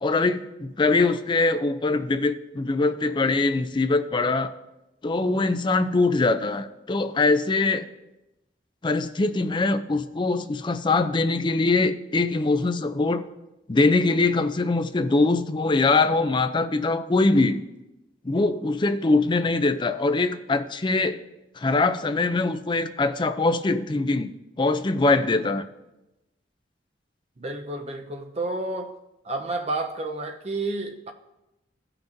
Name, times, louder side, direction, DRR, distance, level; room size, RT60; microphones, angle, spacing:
voice 1, 0.0-4.5 5.0-7.9 8.8-13.2 13.7-17.6 18.2-21.2 21.6-24.3 24.6-25.7, left 3 dB, 25° left, 0.4 m, -23 dB
voice 2, 27.4-29.0 29.2-31.1, right 2 dB, 35° right, 0.7 m, -30 dB
14.5 x 5.8 x 2.6 m
head